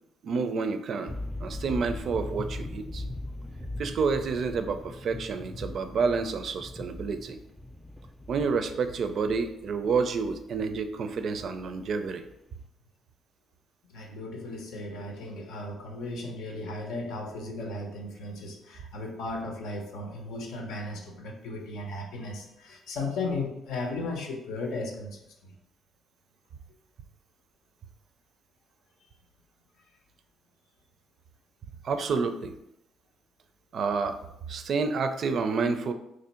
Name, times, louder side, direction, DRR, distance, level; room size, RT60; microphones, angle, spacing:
voice 1, 0.2-1.1 1.4-3.0 3.8-7.4 8.3-12.2 31.8-32.5 33.7-34.2 34.5-35.9, right 5 dB, 60° right, 8 dB, 0.4 m, -29 dB
sound 1, 1.1-12.6, left 1 dB, 5° left, 0.4 m, -40 dB
voice 2, 13.9-25.5, left 2 dB, 85° left, 2 dB, 0.7 m, -36 dB
3.1 x 2.6 x 4.3 m, 0.81 s
cardioid pair, 90°, 0 cm